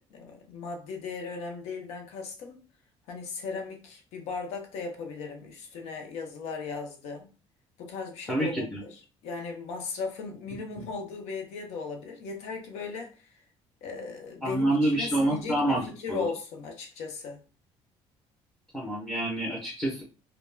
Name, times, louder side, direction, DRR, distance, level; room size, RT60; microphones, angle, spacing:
voice 1, 0.1-2.6 3.1-7.3 7.8-13.1 13.8-17.4, left 4 dB, 80° left, 0.7 m, -37 dB
voice 2, 8.3-8.8 14.4-16.2 18.7-20.0, right 1 dB, 5° left, 0.5 m, -27 dB
2.2 x 2.0 x 3.1 m
cardioid pair, 170°, 11 cm